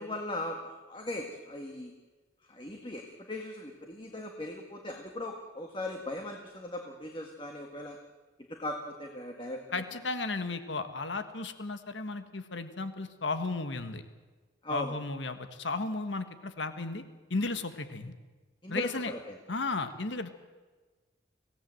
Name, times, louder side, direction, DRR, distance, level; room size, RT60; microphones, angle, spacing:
voice 1, 0.0-1.9 2.5-8.0 8.5-9.8 14.6-15.0 18.6-19.4, left 1 dB, 25° left, 3 dB, 1.7 m, -39 dB
voice 2, 9.7-14.0 14.7-17.0 17.3-18.1 18.7-19.1 19.5-20.3, left 3 dB, 80° left, 9 dB, 1.5 m, -34 dB
25.5 x 17.0 x 7.7 m, 1.3 s
head